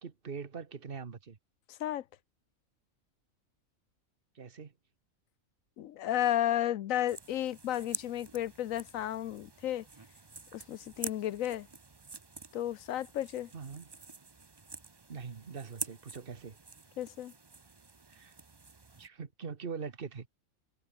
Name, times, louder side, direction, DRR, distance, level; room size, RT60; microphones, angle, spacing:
voice 1, 0.0-1.4 4.3-4.7 13.5-13.9 15.1-16.6 18.1-18.3 19.0-20.3, right 5 dB, 40° right, 1.5 m, -42 dB
voice 2, 1.7-2.0 5.8-9.8 10.5-11.7 12.5-13.5 17.0-17.3, left 12 dB, 75° left, 1.1 m, -33 dB
sound 1, 7.1-19.1, right 4 dB, 25° right, 0.7 m, -47 dB
omnidirectional pair, 1.5 m